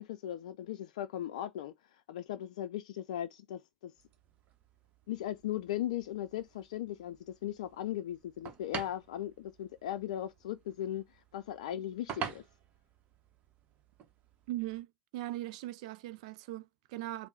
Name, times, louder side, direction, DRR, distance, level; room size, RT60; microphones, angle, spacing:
voice 1, 0.0-1.7 2.1-3.9 5.1-11.0 11.3-12.4, left 12 dB, 65° left, 0.4 m, -38 dB
sound 1, 4.0-14.8, right 8 dB, 40° right, 0.8 m, -48 dB
voice 2, 14.5-14.9 15.1-17.3, right 16 dB, 60° right, 0.4 m, -39 dB
3.6 x 2.1 x 4.0 m
figure-of-eight pair, 85°, 4 cm